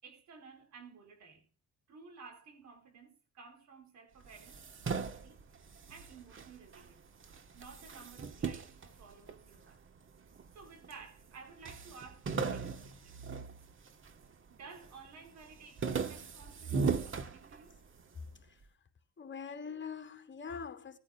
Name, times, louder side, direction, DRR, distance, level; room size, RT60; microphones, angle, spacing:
voice 1, 0.0-1.5 1.9-7.1 7.5-9.8 10.5-13.2 14.5-17.8, right 5 dB, 65° right, 3.9 m, -54 dB
sound 1, 4.2-6.9 7.2-9.7 10.3-11.0 11.3-11.4 11.7-14.2 14.6-15.1 15.4-18.0, right 5 dB, 40° right, 1.6 m, -38 dB
voice 2, 18.3-18.8 19.2-21.0, left 6 dB, 40° left, 2.7 m, -44 dB
19.0 x 9.1 x 2.5 m
cardioid pair, 90°, 30 cm